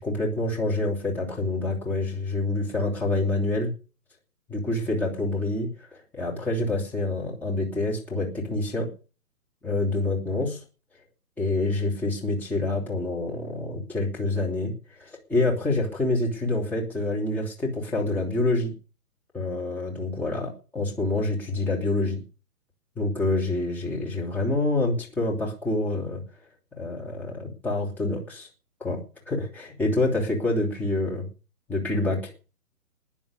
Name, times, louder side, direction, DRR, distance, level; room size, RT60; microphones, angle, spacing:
voice 1, 0.0-3.7 4.5-5.7 6.1-8.9 9.6-10.6 11.4-18.7 19.3-22.2 23.0-26.2 26.8-28.5 28.8-29.0 29.3-31.3 31.7-32.3, left 2 dB, 5° left, -4 dB, 2.9 m, -27 dB
20.5 x 7.2 x 6.9 m, 0.35 s
figure-of-eight pair, 135°, 45 cm